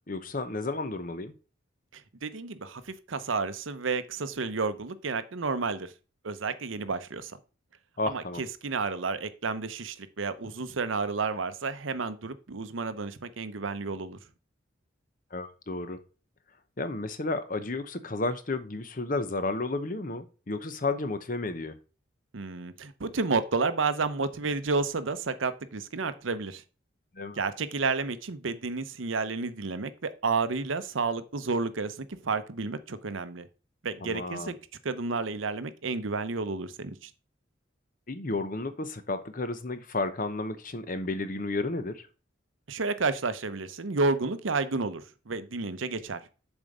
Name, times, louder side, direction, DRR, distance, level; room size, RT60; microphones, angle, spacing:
voice 1, 0.1-1.3 8.0-8.4 15.3-16.0 16.8-21.7 27.2-27.4 34.0-34.6 38.1-42.0, left 2 dB, 45° left, 0.8 m, -32 dB
voice 2, 1.9-5.9 6.2-7.3 8.1-14.2 22.3-26.6 27.3-33.5 33.8-34.5 34.8-37.1 42.7-46.2, right 4 dB, 85° right, 0.8 m, -31 dB
7.2 x 4.5 x 5.2 m
head